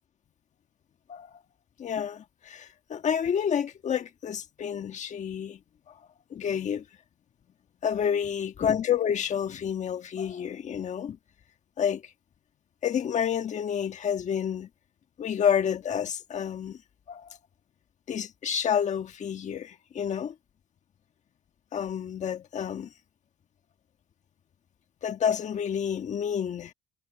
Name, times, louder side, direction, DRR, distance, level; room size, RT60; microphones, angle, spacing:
voice 1, 1.8-5.6 5.9-6.0 6.3-6.8 7.8-11.2 11.8-12.0 12.8-14.7 15.2-16.8 17.1-17.4 18.1-20.3 21.7-22.9 25.0-26.7, left 8 dB, 45° left, 1.5 m, -29 dB
cardioid pair, 110°, 17 cm